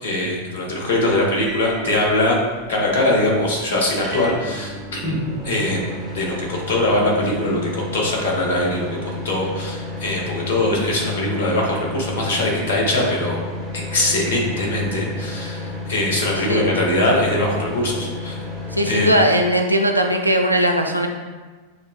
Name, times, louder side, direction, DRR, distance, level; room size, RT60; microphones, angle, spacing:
voice 1, 0.0-2.4 2.7-5.2 5.4-13.4 13.9-18.4 18.9-19.1, left 1 dB, 60° left, -2 dB, 0.9 m, -22 dB
sound 1, 1.1-19.2, left 2 dB, 20° right, 0.9 m, -32 dB
voice 2, 18.7-21.1, equal, 90° right, 3 dB, 0.3 m, -18 dB
6.3 x 2.1 x 2.2 m, 1.4 s
figure-of-eight pair, 90°, 0 cm